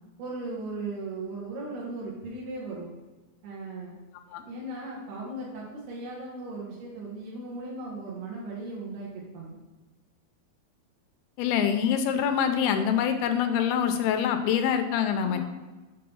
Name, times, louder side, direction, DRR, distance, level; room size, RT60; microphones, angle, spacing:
voice 1, 0.2-2.9 3.4-4.0 4.5-9.6 15.1-15.4, right 2 dB, 90° right, -5 dB, 3.5 m, -37 dB
voice 2, 11.4-15.4, left 8 dB, 80° left, 7 dB, 2.4 m, -25 dB
7.7 x 3.5 x 5.5 m, 1.2 s
omnidirectional pair, 4.4 m